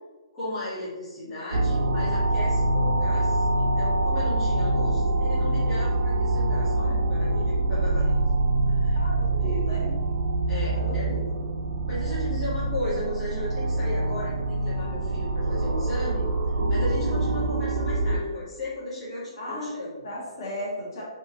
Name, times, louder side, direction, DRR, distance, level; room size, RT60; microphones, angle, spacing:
voice 1, 0.3-8.0 8.7-9.0 9.3-10.0 10.5-11.3 11.9-16.2 16.7-20.0, left 1 dB, 10° left, -12 dB, 1.0 m, -35 dB
sound 1, 1.5-18.2, right 2 dB, 55° right, 0.4 m, -25 dB
voice 2, 8.9-10.2 10.7-11.4 19.4-19.7 20.0-21.0, left 1 dB, 45° left, -5 dB, 0.8 m, -36 dB
2.8 x 2.3 x 2.7 m, 1.2 s
hypercardioid pair, 175°, 3 cm